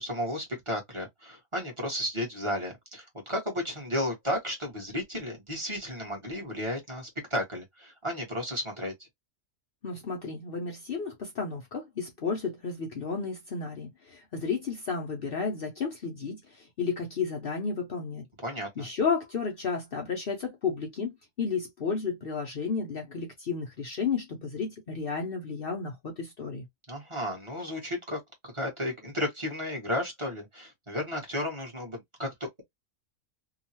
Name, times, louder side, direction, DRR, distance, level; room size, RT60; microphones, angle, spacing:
voice 1, 0.0-8.9 18.4-18.9 26.9-32.6, left 1 dB, 25° right, 1.2 m, -33 dB
voice 2, 9.8-18.3 18.8-26.7, left 5 dB, 55° left, 0.8 m, -32 dB
2.9 x 2.3 x 2.8 m
omnidirectional pair, 1.4 m